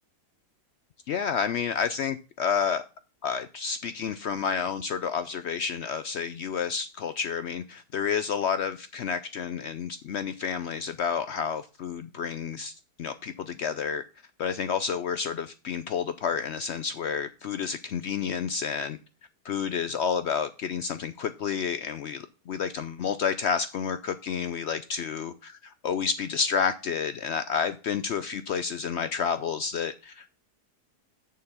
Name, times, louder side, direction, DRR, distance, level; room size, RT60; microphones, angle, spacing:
voice 1, 1.1-2.8 3.2-12.7 13.0-14.0 14.4-19.0 19.4-25.5 25.8-30.4, left 6 dB, 80° left, 0.6 m, -30 dB
7.0 x 6.7 x 5.6 m
omnidirectional pair, 1.7 m